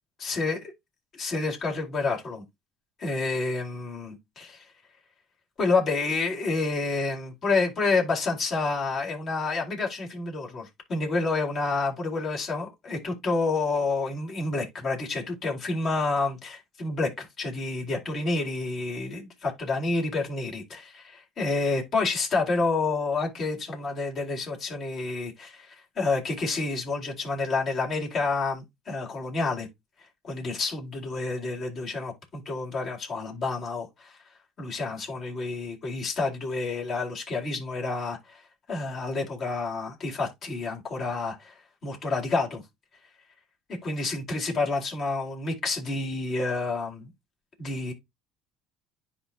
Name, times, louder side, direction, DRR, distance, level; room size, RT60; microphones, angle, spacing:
voice 1, 0.2-0.6 1.1-2.4 3.0-4.7 5.6-29.7 30.2-34.2 34.6-38.4 38.7-41.5 41.8-42.6 43.8-47.1 47.6-47.9, left 3 dB, 50° left, 4.2 m, -29 dB
10.5 x 3.9 x 2.9 m
supercardioid pair, 75°, 0 cm